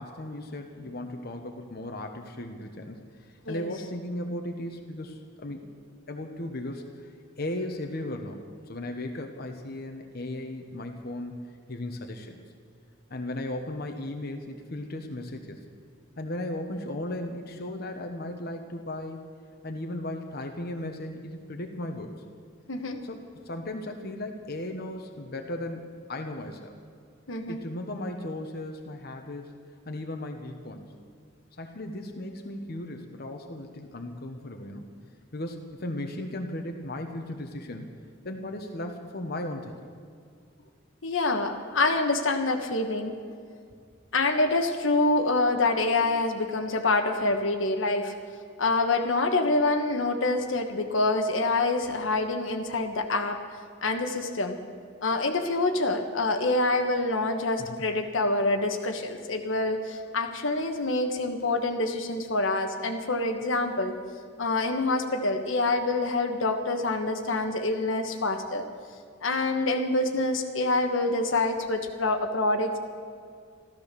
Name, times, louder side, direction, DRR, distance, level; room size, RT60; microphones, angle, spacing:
voice 1, 0.0-5.6 6.1-8.4 8.7-12.4 13.1-15.6 16.2-19.2 19.6-22.2 23.0-26.7 27.5-29.5 29.9-30.9 31.6-34.8 35.3-37.9 38.2-39.7 57.6-57.8, left 1 dB, 55° left, 4 dB, 1.1 m, -36 dB
voice 2, 22.7-23.0 27.3-27.6 41.0-43.1 44.1-48.1 48.6-53.4 53.8-54.6 55.0-63.9 64.4-68.7 69.2-72.8, left 2 dB, 85° left, 5 dB, 1.4 m, -26 dB
13.5 x 13.5 x 6.8 m, 2.2 s
head